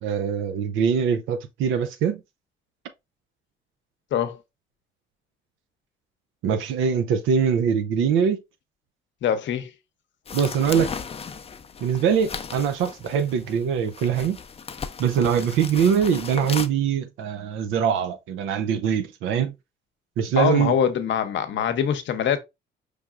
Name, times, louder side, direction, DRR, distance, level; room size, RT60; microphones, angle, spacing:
voice 1, 0.0-2.2 6.4-8.4 10.3-11.0 11.8-14.4 15.0-19.5 20.2-20.7, right 7 dB, 90° right, 0.5 m, -23 dB
voice 2, 9.2-9.7 20.4-22.4, left 8 dB, 70° left, 0.7 m, -23 dB
sound 1, 10.3-16.7, left 6 dB, 30° left, 0.5 m, -36 dB
4.6 x 3.4 x 2.4 m
cardioid pair, 90°, 20 cm